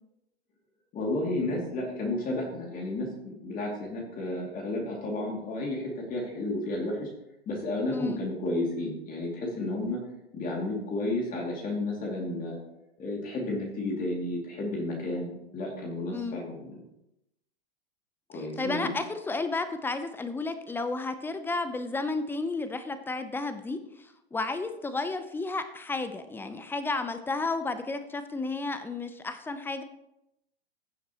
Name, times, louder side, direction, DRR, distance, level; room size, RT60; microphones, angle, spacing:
voice 1, 0.9-7.1 7.5-10.0 10.3-12.6 13.0-16.8 18.3-18.9, left 2 dB, 25° left, -1 dB, 2.6 m, -32 dB
voice 2, 18.6-29.8, left 3 dB, 5° left, 10 dB, 0.7 m, -32 dB
16.0 x 7.1 x 3.0 m, 0.84 s
hypercardioid pair, 110°, 31 cm